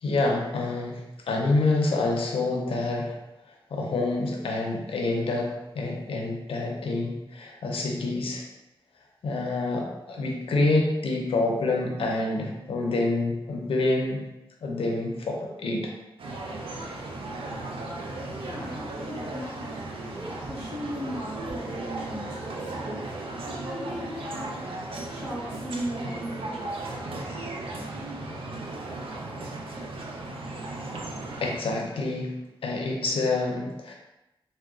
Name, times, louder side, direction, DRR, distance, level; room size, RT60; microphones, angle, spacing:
voice 1, 0.0-3.2 3.7-8.4 9.2-14.2 14.6-15.9 27.6-27.9 28.3-28.4 31.4-32.3 32.6-33.9, left 2 dB, 85° left, 0 dB, 0.5 m, -27 dB
sound 1, 16.2-31.6, right 2 dB, 80° right, 0.5 m, -36 dB
voice 2, 18.3-23.1 23.4-24.6 24.9-26.8, equal, 5° right, -13 dB, 1.3 m, -37 dB
3.8 x 2.1 x 2.4 m, 0.95 s
wide cardioid pair, 90°, 9 cm